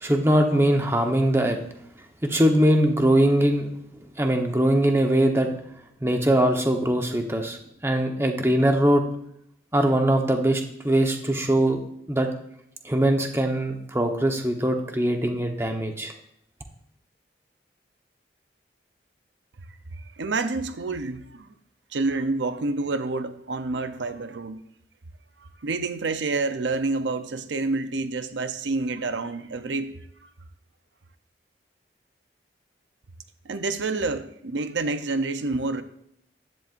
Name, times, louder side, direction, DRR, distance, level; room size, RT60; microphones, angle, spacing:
voice 1, 0.0-1.6 2.2-3.7 4.2-5.5 6.0-7.6 7.8-9.0 9.7-11.8 12.1-12.3 12.8-16.1, right 1 dB, 15° right, 3 dB, 1.0 m, -21 dB
voice 2, 19.9-21.5 21.9-24.6 25.4-30.3 33.4-35.8, right 3 dB, 85° right, 9 dB, 0.7 m, -28 dB
14.5 x 11.0 x 2.6 m, 0.72 s
head